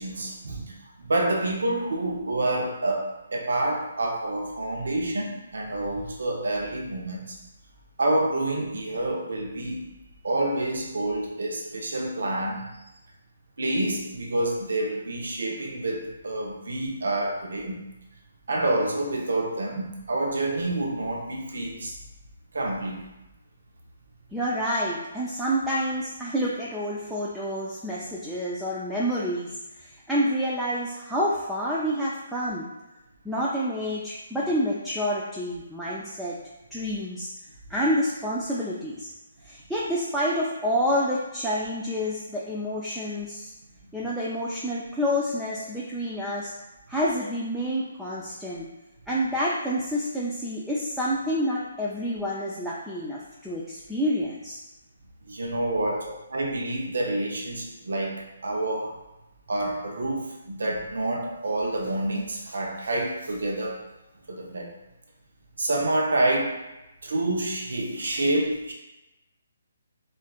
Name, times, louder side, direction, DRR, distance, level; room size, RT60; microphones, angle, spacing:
voice 1, 0.0-7.4 8.0-9.9 10.2-12.7 13.6-17.8 18.5-22.0 22.5-23.0 55.3-59.0 59.5-63.8 64.3-64.7 65.6-66.6 67.0-68.7, right 2 dB, 75° right, 0 dB, 0.7 m, -28 dB
voice 2, 24.3-29.5 29.8-32.7 33.2-36.4 36.7-37.3 37.7-39.1 39.4-43.5 43.9-46.5 46.9-48.7 49.1-54.6 55.8-56.2, equal, 5° right, -8 dB, 0.4 m, -28 dB
4.3 x 2.4 x 2.4 m, 0.97 s
hypercardioid pair, 155°, 0 cm